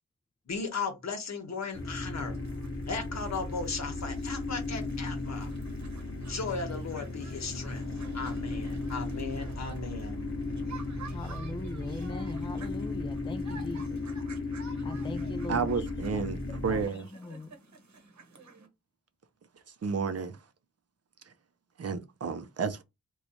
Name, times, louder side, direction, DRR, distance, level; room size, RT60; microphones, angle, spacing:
voice 1, 0.5-2.4 2.9-5.5 6.2-7.9 8.1-10.2, left 4 dB, 65° left, 1.0 m, -36 dB
sound 1, 1.7-16.8, left 2 dB, 45° left, 0.9 m, -35 dB
sound 2, 1.7-18.7, right 4 dB, 75° right, 1.0 m, -52 dB
voice 2, 11.1-14.0 14.8-15.9 16.1-16.2 16.7-17.5, left 2 dB, 20° left, 0.4 m, -41 dB
voice 3, 15.5-17.1 19.8-20.4 21.8-22.8, right 5 dB, 55° right, 0.6 m, -31 dB
3.1 x 2.3 x 4.0 m
wide cardioid pair, 80°, 29 cm